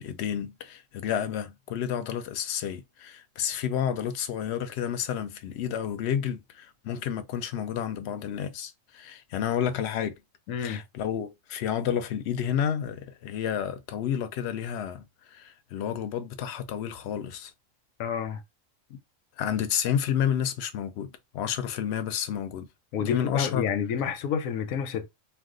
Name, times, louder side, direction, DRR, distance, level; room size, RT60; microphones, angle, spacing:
voice 1, 0.0-10.1 10.6-15.0 15.3-17.5 18.9-19.0 19.4-22.7 23.0-23.7, left 9 dB, 65° left, 0.7 m, -30 dB
voice 2, 10.5-10.8 18.0-18.4 22.9-25.1, left 7 dB, 85° left, 1.0 m, -29 dB
2.4 x 2.3 x 3.6 m
omnidirectional pair, 1.4 m